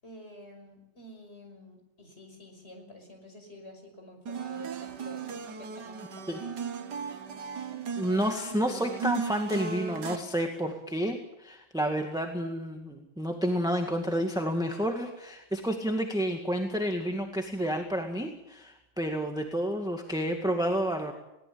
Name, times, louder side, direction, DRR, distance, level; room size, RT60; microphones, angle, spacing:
voice 1, 0.0-6.5, left 1 dB, 30° left, 4 dB, 6.1 m, -49 dB
sound 1, 4.3-10.2, right 6 dB, 60° right, 2.0 m, -37 dB
voice 2, 8.0-21.1, equal, ahead, 3 dB, 1.9 m, -30 dB
21.0 x 19.0 x 8.7 m, 0.88 s
omnidirectional pair, 2.1 m